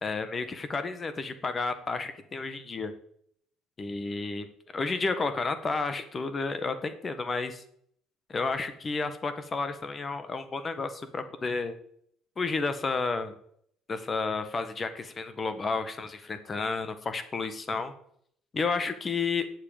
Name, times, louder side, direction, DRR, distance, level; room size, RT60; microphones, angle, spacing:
voice 1, 0.0-2.9 3.8-4.5 4.7-7.6 8.3-11.7 12.4-13.3 13.9-17.9 18.5-19.5, left 4 dB, 30° left, 11 dB, 1.5 m, -31 dB
8.5 x 7.9 x 8.9 m, 0.68 s
cardioid pair, 120°, 0 cm